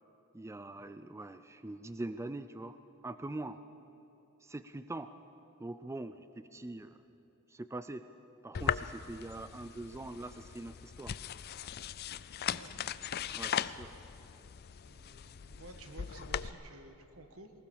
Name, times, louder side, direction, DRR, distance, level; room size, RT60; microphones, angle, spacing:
voice 1, 0.3-2.8 3.0-3.6 4.4-5.1 5.6-7.0 7.5-8.1 8.4-11.2 13.3-13.9, right 2 dB, 15° right, 11 dB, 0.4 m, -43 dB
sound 1, 8.5-16.5, left 8 dB, 45° left, 0.4 m, -39 dB
voice 2, 12.5-12.8 14.9-17.5, right 2 dB, 70° right, 7 dB, 1.5 m, -53 dB
20.5 x 19.5 x 7.0 m, 3.0 s
head